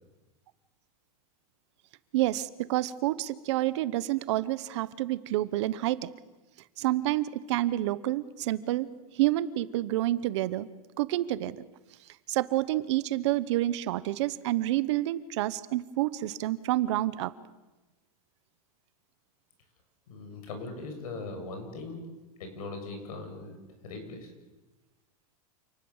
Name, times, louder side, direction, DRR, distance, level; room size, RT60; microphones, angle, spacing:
voice 1, 2.1-6.1 6.8-8.9 9.1-10.7 11.0-11.6 12.3-17.3, right 15 dB, 50° right, 16 dB, 1.0 m, -28 dB
voice 2, 20.1-22.0 22.4-23.6 23.8-24.3, left 3 dB, 75° left, 5 dB, 7.3 m, -40 dB
28.5 x 19.5 x 7.3 m, 1.1 s
supercardioid pair, 175°, 19 cm